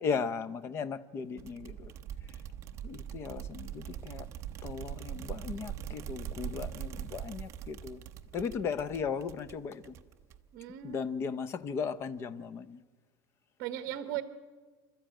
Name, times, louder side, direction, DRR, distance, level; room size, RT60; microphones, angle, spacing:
voice 1, 0.0-1.9 2.8-4.3 4.6-8.0 8.3-9.9 10.8-12.8, left 6 dB, 25° left, 0.7 m, -36 dB
sound 1, 1.4-10.6, right 10 dB, 30° right, 0.8 m, -42 dB
voice 2, 10.5-11.0 13.6-14.2, right 13 dB, 50° right, 1.2 m, -37 dB
27.0 x 13.0 x 8.9 m
cardioid pair, 170°, 10 cm